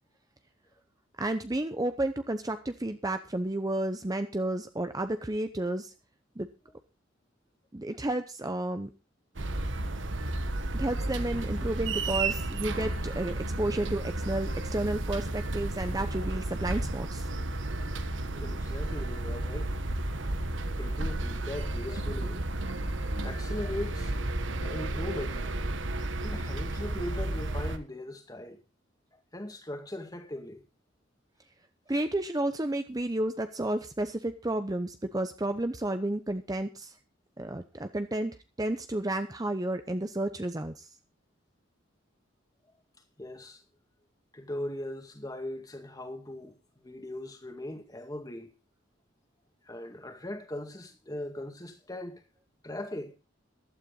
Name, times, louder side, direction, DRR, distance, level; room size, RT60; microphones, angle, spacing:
voice 1, 1.2-5.9 6.4-6.5 7.7-8.9 10.7-17.3 31.9-37.0 37.4-40.9, right 1 dB, 20° right, 0.8 m, -31 dB
sound 1, 9.3-27.8, right 2 dB, 75° right, 1.3 m, -32 dB
voice 2, 18.3-19.8 20.8-22.5 23.2-24.2 24.6-25.6 26.2-28.6 29.1-30.6 43.2-43.6 44.3-48.5 49.6-52.2 52.6-53.2, left 1 dB, 20° left, 2.1 m, -39 dB
15.0 x 12.0 x 3.9 m
head